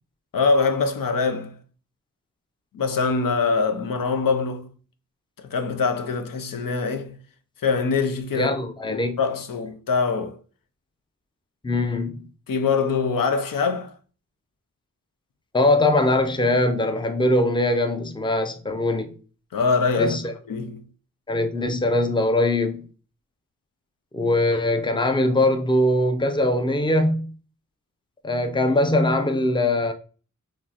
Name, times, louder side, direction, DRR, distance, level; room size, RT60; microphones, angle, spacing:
voice 1, 0.3-1.6 2.7-4.7 5.4-7.2 7.6-8.5 8.9-10.4 12.5-13.9 19.5-20.2 20.5-20.8, left 4 dB, 85° left, 0.6 m, -23 dB
voice 2, 8.3-9.2 11.6-12.3 15.5-19.1 20.0-20.3 21.3-22.8 24.1-27.3 28.2-29.9, left 1 dB, 15° left, 0.6 m, -21 dB
5.1 x 3.0 x 2.9 m
wide cardioid pair, 75°, 33 cm